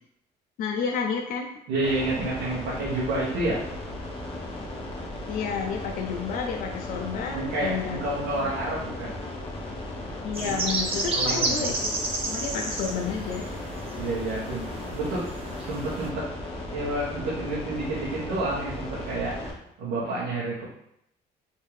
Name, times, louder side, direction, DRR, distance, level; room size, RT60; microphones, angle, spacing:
voice 1, 0.6-1.5 5.3-8.0 8.4-8.5 10.2-12.0 12.3-13.5, left 6 dB, 55° left, 2 dB, 0.4 m, -31 dB
voice 2, 1.7-3.6 7.3-9.2 10.4-10.6 11.1-11.7 14.0-15.3 15.7-16.3 16.7-20.6, right 2 dB, 90° right, -8 dB, 1.1 m, -29 dB
sound 1, 1.8-19.5, left 1 dB, 35° left, 0.9 m, -36 dB
sound 2, 10.3-16.1, right 2 dB, 35° right, 0.7 m, -31 dB
3.5 x 2.7 x 3.2 m, 0.77 s
cardioid pair, 110°, 17 cm